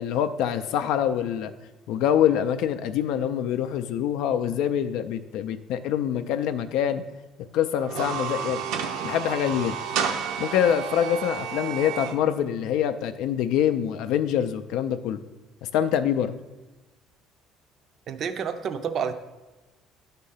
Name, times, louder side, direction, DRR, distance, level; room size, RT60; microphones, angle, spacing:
voice 1, 0.0-1.5 1.9-7.0 7.5-8.6 9.0-9.8 10.4-15.2 15.7-16.3, left 9 dB, 70° left, 9 dB, 0.4 m, -25 dB
sound 1, 7.8-12.1, right 7 dB, 75° right, 0.7 m, -31 dB
voice 2, 18.1-19.1, right 7 dB, 40° right, 8 dB, 0.5 m, -29 dB
9.9 x 3.7 x 5.6 m, 1.1 s
cardioid pair, 165°, 0 cm